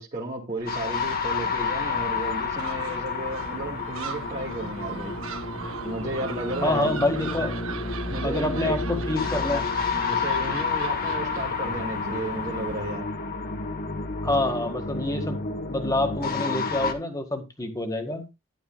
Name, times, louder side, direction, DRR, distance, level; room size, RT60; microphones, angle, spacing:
voice 1, 0.0-5.2 5.8-7.0 8.1-8.8 10.0-13.1, right 2 dB, 30° right, 2.3 m, -33 dB
Gull seagull, 0.6-13.0, right 4 dB, 70° right, 1.4 m, -39 dB
sound 1, 0.7-16.9, left 4 dB, 40° left, 1.4 m, -30 dB
voice 2, 6.6-7.6 8.2-9.6 14.2-15.4 15.7-18.3, left 2 dB, 15° left, 1.8 m, -27 dB
12.0 x 11.0 x 2.4 m
head